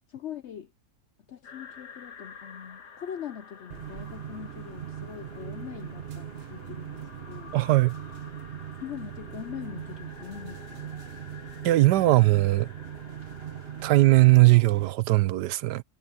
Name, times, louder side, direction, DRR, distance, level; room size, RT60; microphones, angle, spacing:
voice 1, 0.1-0.7 1.3-7.6 8.8-10.9, left 9 dB, 60° left, 0.7 m, -41 dB
sound 1, 1.4-14.4, left 5 dB, 85° left, 2.3 m, -49 dB
sound 2, 3.7-14.9, right 10 dB, 50° right, 0.8 m, -40 dB
voice 2, 7.5-7.9 11.6-12.7 13.8-15.8, right 18 dB, 85° right, 1.2 m, -19 dB
omnidirectional pair, 1.7 m